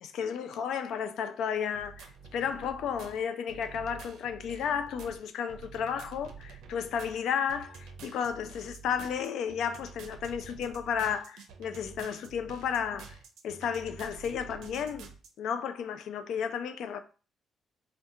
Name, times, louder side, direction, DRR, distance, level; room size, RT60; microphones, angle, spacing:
voice 1, 0.0-2.1 2.3-13.2 13.4-15.1 15.4-17.0, left 7 dB, 80° left, 0.3 m, -33 dB
sound 1, 1.7-15.3, right 5 dB, 85° right, 0.5 m, -48 dB
3.5 x 2.2 x 2.7 m
cardioid pair, 90°, 0 cm